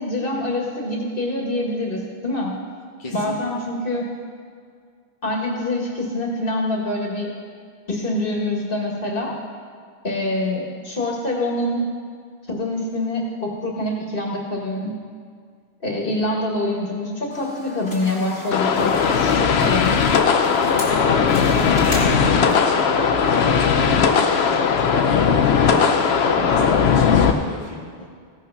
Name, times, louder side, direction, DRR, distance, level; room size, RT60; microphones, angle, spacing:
voice 1, 0.0-2.6 3.1-4.1 5.2-7.3 7.9-9.4 10.0-11.8 12.5-14.9 15.8-20.0, left 1 dB, 60° left, -1 dB, 2.0 m, -25 dB
voice 2, 3.0-3.3 20.3-28.1, left 2 dB, 35° left, -2 dB, 1.1 m, -33 dB
sound 1, 17.3-22.8, left 1 dB, 20° left, 2.4 m, -35 dB
sound 2, 18.5-27.3, left 6 dB, 85° left, 1.0 m, -18 dB
16.0 x 5.8 x 5.7 m, 2.1 s
omnidirectional pair, 1.0 m